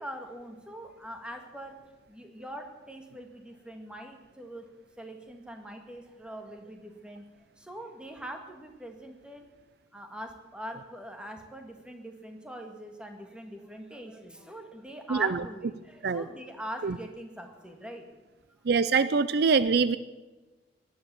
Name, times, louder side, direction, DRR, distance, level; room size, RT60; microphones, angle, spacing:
voice 1, 0.0-1.8 2.1-4.7 5.0-7.3 7.6-9.5 9.9-18.1, equal, 5° right, 4 dB, 1.9 m, -43 dB
voice 2, 15.1-15.4 16.0-16.2 16.8-17.0 18.6-20.0, right 5 dB, 60° right, 15 dB, 0.5 m, -24 dB
18.0 x 11.0 x 7.0 m, 1.2 s
head